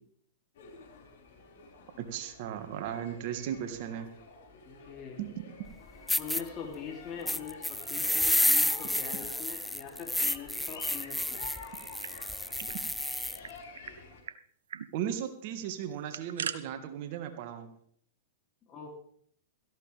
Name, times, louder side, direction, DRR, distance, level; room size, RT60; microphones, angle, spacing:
sound 1, 0.6-14.2, left 5 dB, 65° left, 5.4 m, -49 dB
voice 1, 2.0-4.1 5.2-5.4 14.9-17.7, right 10 dB, 55° right, 7 dB, 1.7 m, -36 dB
voice 2, 4.6-5.2 6.2-11.4 18.6-18.9, left 6 dB, 35° left, 0 dB, 3.2 m, -43 dB
sound 2, 5.7-5.8 6.1-6.4 7.3-13.4, left 1 dB, ahead, 0.5 m, -30 dB
sound 3, 11.7-12.8 13.1-13.2 13.4-14.0 14.3-14.4 14.7-14.9 15.8-16.6, right 8 dB, 80° right, 0.7 m, -40 dB
17.5 x 14.0 x 3.5 m, 0.63 s
hypercardioid pair, 110°, 0 cm